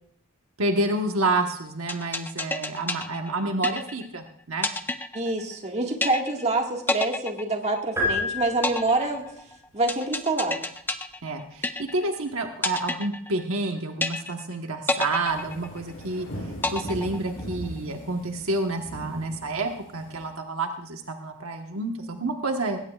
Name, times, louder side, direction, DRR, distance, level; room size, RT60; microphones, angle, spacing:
voice 1, 0.6-4.7 11.2-16.3 16.7-22.8, right 2 dB, 75° right, 4 dB, 1.3 m, -29 dB
sound 1, 1.9-4.2 4.6-5.7 6.0-6.5 6.9-8.1 8.6-12.2 12.6-13.7 14.0-14.5 14.9-16.1 16.6-17.6, left 2 dB, 10° left, 0.6 m, -29 dB
voice 2, 5.1-9.3 9.7-10.6, right 2 dB, 30° right, 2 dB, 1.8 m, -26 dB
sound 2, 8.0-9.3, left 2 dB, 15° right, 6.8 m, -28 dB
sound 3, 15.3-20.3, equal, 60° left, 5.8 m, -39 dB
19.5 x 17.0 x 2.4 m, 0.69 s
head